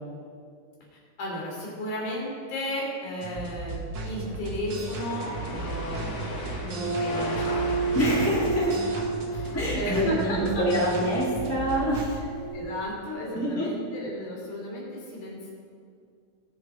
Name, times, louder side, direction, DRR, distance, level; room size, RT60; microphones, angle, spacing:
voice 1, 0.9-7.7 8.1-8.3 9.3-10.7 12.5-15.5, left 1 dB, 80° left, -4 dB, 4.8 m, -34 dB
sound 1, 3.2-12.0, right 3 dB, 45° right, 1.6 m, -36 dB
sound 2, 4.5-10.2, left 1 dB, 35° left, 2.2 m, -38 dB
sound 3, 6.8-12.8, right 4 dB, 85° right, 3.1 m, -31 dB
voice 2, 7.9-8.8 9.5-12.2 13.3-13.6, equal, 5° left, -8 dB, 2.3 m, -26 dB
20.5 x 7.2 x 5.1 m, 2.3 s
omnidirectional pair, 3.4 m